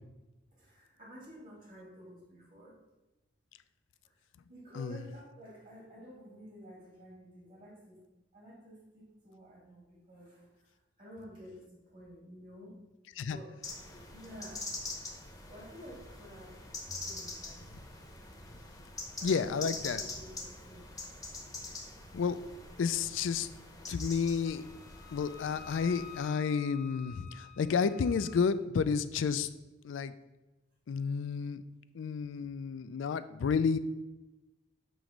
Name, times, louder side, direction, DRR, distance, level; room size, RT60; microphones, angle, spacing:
voice 1, 0.5-2.8 4.0-4.2 4.5-8.0 8.3-12.8 13.3-13.6 13.9-14.7 15.5-17.6 19.2-21.0, equal, 45° right, -5 dB, 2.2 m, -51 dB
sound 1, 13.6-26.2, left 2 dB, 20° left, 0.8 m, -44 dB
voice 2, 19.2-20.0 22.1-22.4 22.8-23.5 23.9-24.6 25.1-29.5 29.8-30.1 30.9-31.6 31.9-33.8, left 6 dB, 70° left, 14 dB, 0.4 m, -31 dB
Wind instrument woodwind instrument, 24.4-28.5, left 8 dB, 55° left, 0.9 m, -51 dB
7.6 x 3.1 x 5.0 m, 1.1 s
head